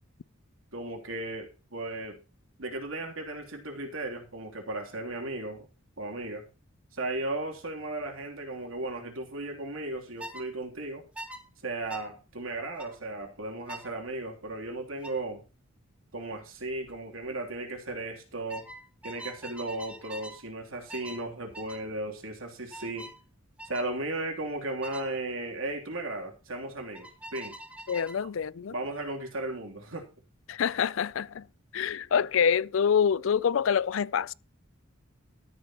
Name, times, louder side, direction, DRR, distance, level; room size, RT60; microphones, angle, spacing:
voice 1, 0.7-2.2 2.6-5.7 6.0-6.4 6.9-11.0 11.6-15.4 16.1-18.6 19.0-23.1 23.6-27.6 28.7-30.1, right 2 dB, 75° right, 3.2 m, -36 dB
sound 1, 10.2-10.5 11.2-11.4 11.9-12.1 12.8-13.0 13.7-13.9 15.0-15.2 16.7-16.9 17.2-17.6 18.5-20.4 20.9-21.3 21.5-21.8 22.7-23.2 23.6-23.9 24.8-25.1 26.9-28.2, right 1 dB, 5° right, 1.7 m, -44 dB
voice 2, 27.9-28.7 30.5-31.5 31.7-34.3, left 7 dB, 65° left, 0.4 m, -26 dB
13.5 x 10.5 x 3.0 m
head